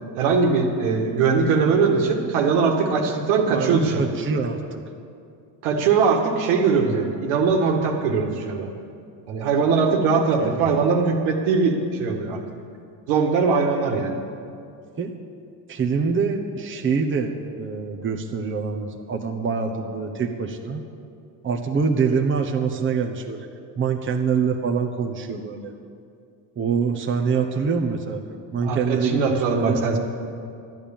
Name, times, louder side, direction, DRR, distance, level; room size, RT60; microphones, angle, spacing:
voice 1, 0.2-4.1 5.6-8.7 9.3-12.4 13.1-14.2 28.6-30.0, right 5 dB, 75° right, 2 dB, 1.9 m, -21 dB
voice 2, 3.5-4.8 10.1-10.8 15.0-15.1 15.7-20.8 21.4-23.5 23.8-25.7 26.6-28.2 28.5-29.8, right 5 dB, 25° right, 2 dB, 1.1 m, -25 dB
12.0 x 10.0 x 7.2 m, 2.4 s
supercardioid pair, 90°, 48 cm